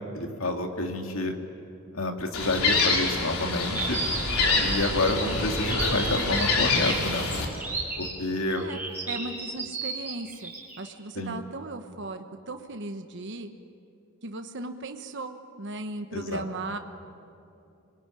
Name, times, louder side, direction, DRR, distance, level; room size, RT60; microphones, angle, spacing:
voice 1, 0.1-1.3 1.9-4.0 4.6-7.3 8.0-8.7 11.2-11.4 16.1-16.4, left 2 dB, 70° left, 3 dB, 2.5 m, -29 dB
Gull seagull, 2.3-7.5, left 3 dB, 90° left, 3.9 m, -26 dB
sound 1, 3.7-10.8, right 3 dB, 10° right, 5.6 m, -34 dB
voice 2, 9.1-10.5 10.8-13.5 14.2-16.8, right 2 dB, 55° right, 6 dB, 1.2 m, -37 dB
27.0 x 22.0 x 9.9 m, 2.7 s
head